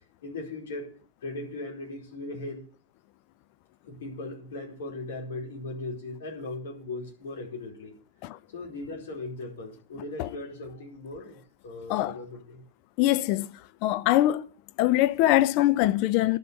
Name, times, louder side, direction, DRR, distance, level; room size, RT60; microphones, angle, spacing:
voice 1, 0.2-0.9 1.2-2.7 3.8-7.9 8.5-12.6, left 2 dB, 60° left, 4.4 m, -38 dB
voice 2, 13.0-13.5 13.8-14.4 14.8-16.4, left 15 dB, 45° left, 0.5 m, -23 dB
11.5 x 6.8 x 8.3 m
figure-of-eight pair, 90°, 0 cm